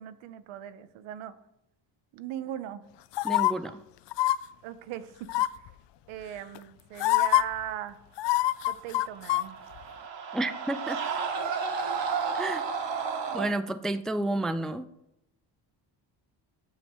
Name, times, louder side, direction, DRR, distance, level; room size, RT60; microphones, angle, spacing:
voice 1, 0.0-1.3 2.1-2.8 4.6-5.3 6.1-8.0 8.7-9.6, right 11 dB, 85° right, 13 dB, 0.8 m, -39 dB
sound 1, 3.1-3.5 4.1-4.4 5.3-5.7 6.6-6.7 7.0-7.4 8.2-9.4 9.8-9.9, left 16 dB, 65° left, 0.5 m, -24 dB
voice 2, 3.2-3.8 10.3-11.0 12.4-12.6 13.3-14.9, right 1 dB, ahead, 11 dB, 0.3 m, -30 dB
Screaming, 9.0-13.5, right 5 dB, 65° right, 1.4 m, -32 dB
8.9 x 6.5 x 3.6 m, 0.82 s
cardioid pair, 85°, 47 cm